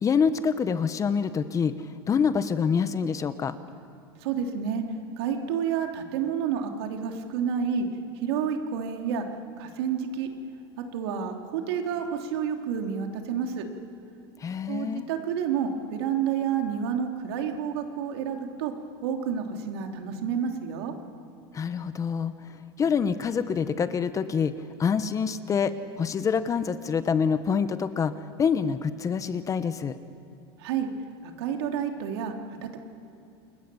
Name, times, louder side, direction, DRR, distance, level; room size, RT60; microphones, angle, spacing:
voice 1, 0.0-3.5 14.4-15.1 21.5-22.5 22.8-24.5 24.8-29.9, left 6 dB, 25° left, 12 dB, 1.0 m, -26 dB
voice 2, 4.2-4.8 5.2-7.9 8.2-9.3 9.6-10.3 10.8-13.7 14.7-18.7 19.0-20.9 30.6-30.9 31.2-32.8, right 7 dB, 75° right, 3 dB, 3.1 m, -29 dB
28.5 x 21.5 x 7.0 m, 2.7 s
supercardioid pair, 125°, 13 cm